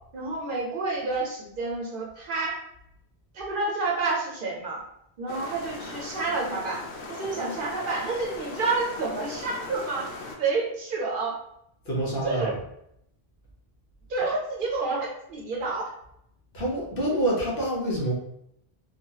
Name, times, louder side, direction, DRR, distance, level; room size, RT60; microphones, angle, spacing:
voice 1, 0.1-2.6 3.3-4.8 5.2-6.8 7.1-10.1 10.4-11.4 12.2-12.5 14.1-15.9, right 3 dB, 60° right, -2 dB, 0.7 m, -29 dB
sound 1, 5.3-10.4, left 3 dB, 90° left, 0.9 m, -39 dB
voice 2, 11.8-12.6 16.5-18.1, right 1 dB, 60° left, -4 dB, 1.0 m, -27 dB
3.0 x 2.3 x 2.7 m, 0.76 s
omnidirectional pair, 1.1 m